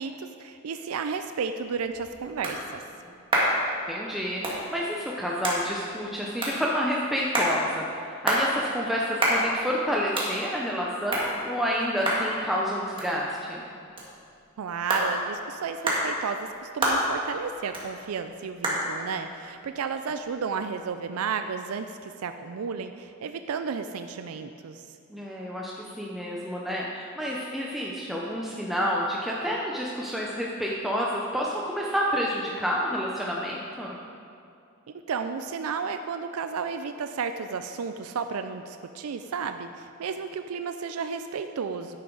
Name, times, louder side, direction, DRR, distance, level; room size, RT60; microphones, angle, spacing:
voice 1, 0.0-2.8 14.6-24.8 35.1-42.0, right 5 dB, 85° right, 8 dB, 0.4 m, -33 dB
sound 1, 1.5-20.8, right 1 dB, 25° right, 1.9 m, -31 dB
voice 2, 3.9-13.6 25.1-34.0, equal, ahead, -4 dB, 0.7 m, -29 dB
10.5 x 9.7 x 3.9 m, 2.5 s
head